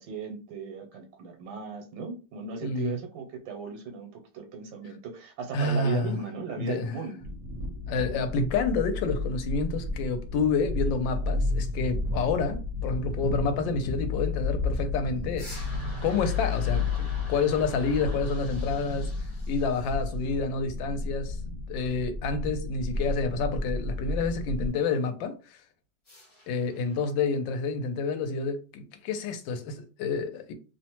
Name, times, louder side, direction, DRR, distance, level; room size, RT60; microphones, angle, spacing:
voice 1, 0.0-7.3, right 5 dB, 80° right, 1.3 m, -37 dB
voice 2, 2.6-3.0 5.5-6.1 6.6-6.9 7.9-15.7 16.0-19.1 19.5-21.4 21.7-25.6 26.5-30.5, left 4 dB, 80° left, 1.3 m, -29 dB
sound 1, 7.2-24.7, left 3 dB, 60° right, 0.7 m, -32 dB
sound 2, 15.4-20.4 26.1-27.0, equal, 40° left, 0.4 m, -47 dB
3.0 x 2.1 x 2.8 m
omnidirectional pair, 2.0 m